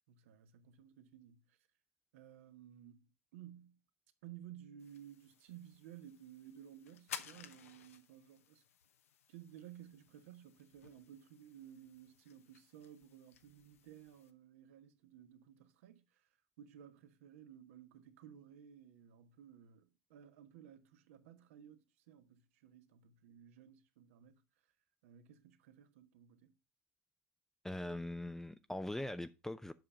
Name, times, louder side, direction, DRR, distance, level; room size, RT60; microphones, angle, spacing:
voice 1, 0.0-1.6 2.1-3.8 4.2-8.6 9.3-24.4 25.0-26.6, right 10 dB, 75° right, 1.2 m, -56 dB
sound 1, 4.8-14.3, left 9 dB, 85° left, 0.8 m, -55 dB
voice 2, 27.6-29.7, left 1 dB, 5° left, 0.4 m, -41 dB
7.8 x 5.6 x 4.9 m
hypercardioid pair, 95°, 7 cm